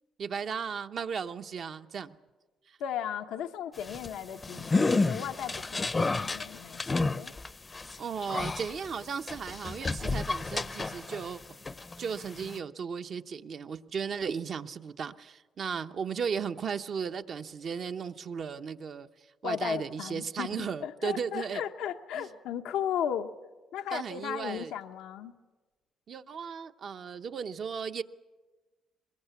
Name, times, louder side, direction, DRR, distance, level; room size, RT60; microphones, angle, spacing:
voice 1, 0.2-2.1 2.7-2.8 8.0-11.4 12.0-19.1 19.4-21.6 22.1-22.3 23.9-24.7 26.1-28.0, right 6 dB, 55° right, 7 dB, 0.9 m, -35 dB
voice 2, 2.8-7.3 19.4-23.3 23.7-25.3, left 9 dB, 90° left, 6 dB, 0.9 m, -36 dB
sound 1, 3.8-11.3 11.7-12.6, left 3 dB, 25° left, 0.7 m, -31 dB
22.0 x 21.5 x 8.3 m, 1.2 s
cardioid pair, 90°, 0 cm